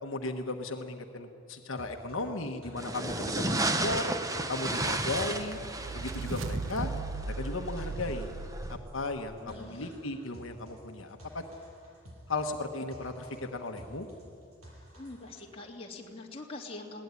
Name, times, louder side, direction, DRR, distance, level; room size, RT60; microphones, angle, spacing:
voice 1, 0.0-4.1 4.5-5.6 5.9-6.9 7.3-8.3 8.7-11.4 12.3-14.1, left 2 dB, 70° left, 4 dB, 1.2 m, -36 dB
sound 1, 1.8-15.5, equal, 90° right, 7.7 m, -53 dB
sound 2, 2.8-8.8, right 2 dB, 15° right, 0.9 m, -33 dB
sound 3, 5.2-9.4, right 4 dB, 70° right, 0.6 m, -39 dB
voice 2, 9.4-10.0 14.9-17.0, left 2 dB, 25° left, -1 dB, 2.5 m, -44 dB
20.5 x 18.0 x 9.6 m, 2.5 s
head